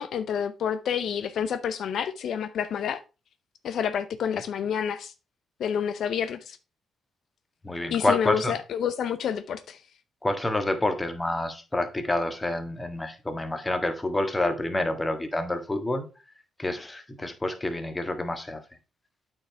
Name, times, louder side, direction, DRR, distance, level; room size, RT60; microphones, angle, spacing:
voice 1, 0.0-3.0 3.6-5.1 5.6-6.6 7.9-9.8, left 8 dB, 65° left, 0.5 m, -29 dB
voice 2, 7.6-8.5 10.2-16.1 16.6-18.6, left 2 dB, 15° left, 1.5 m, -28 dB
8.7 x 4.5 x 4.5 m
cardioid pair, 90°, 0 cm